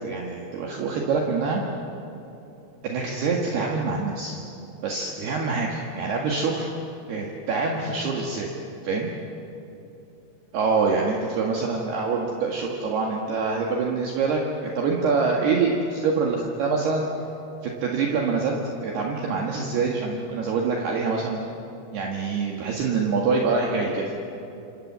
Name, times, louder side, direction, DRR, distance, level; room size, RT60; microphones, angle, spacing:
voice 1, 0.0-1.6 2.8-4.4 4.8-6.7 7.1-8.5 8.8-9.1 10.5-17.1 17.6-21.4 21.9-24.1, right 4 dB, 60° right, -1 dB, 3.5 m, -25 dB
28.0 x 27.5 x 7.5 m, 2.9 s
omnidirectional pair, 5.9 m